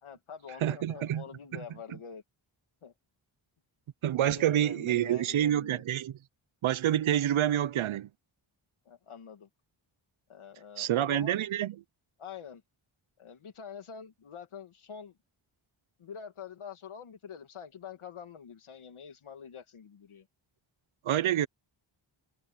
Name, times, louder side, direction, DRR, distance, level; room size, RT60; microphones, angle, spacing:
voice 1, 0.0-2.2 2.8-2.9 4.2-5.8 8.9-9.5 10.3-11.4 12.2-12.6 13.2-15.2 16.0-20.3, left 7 dB, 85° left, 2.6 m, -46 dB
voice 2, 0.6-1.2 1.5-1.6 4.0-6.2 6.6-8.1 10.8-11.7 21.0-21.5, right 11 dB, 80° right, 0.7 m, -27 dB
wide cardioid pair, 125°, 48 cm